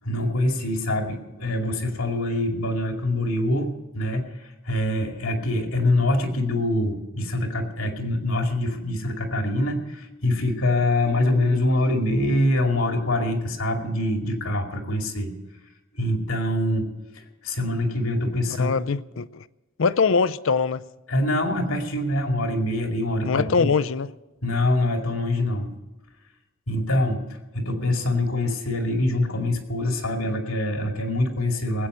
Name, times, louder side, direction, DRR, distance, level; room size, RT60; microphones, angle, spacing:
voice 1, 0.0-15.3 15.9-18.8 21.1-23.7 24.4-25.7 26.7-27.2 27.5-31.9, left 1 dB, 85° left, 2.4 m, -24 dB
voice 2, 18.6-19.4 19.8-20.8 23.3-24.1, left 5 dB, 65° left, 0.5 m, -22 dB
19.0 x 8.7 x 6.6 m
head